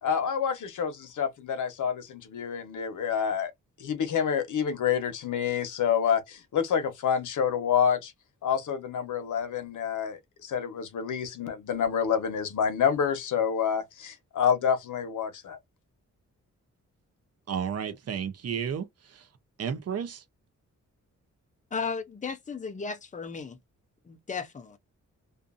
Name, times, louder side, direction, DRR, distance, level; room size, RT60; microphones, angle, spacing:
voice 1, 0.0-3.5 3.8-8.1 8.4-15.6, left 7 dB, 80° left, 0.8 m, -28 dB
voice 2, 17.5-19.3 19.6-20.2, right 7 dB, 55° right, 0.6 m, -32 dB
voice 3, 21.7-23.6 24.1-24.8, left 5 dB, 25° left, 0.5 m, -35 dB
2.5 x 2.5 x 2.4 m
wide cardioid pair, 155°, 30 cm